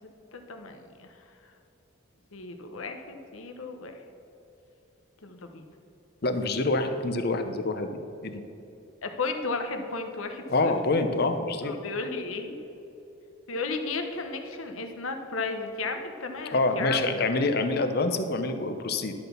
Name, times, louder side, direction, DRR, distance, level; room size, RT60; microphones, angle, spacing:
voice 1, 0.3-1.1 2.3-4.0 5.2-5.6 9.0-10.7 11.6-12.6 13.5-17.2 17.5-17.7, left 3 dB, 85° left, 5 dB, 0.9 m, -34 dB
voice 2, 6.2-8.4 10.5-11.7 16.5-19.1, left 2 dB, 50° left, 8 dB, 0.6 m, -26 dB
11.5 x 4.1 x 6.8 m, 2.9 s
head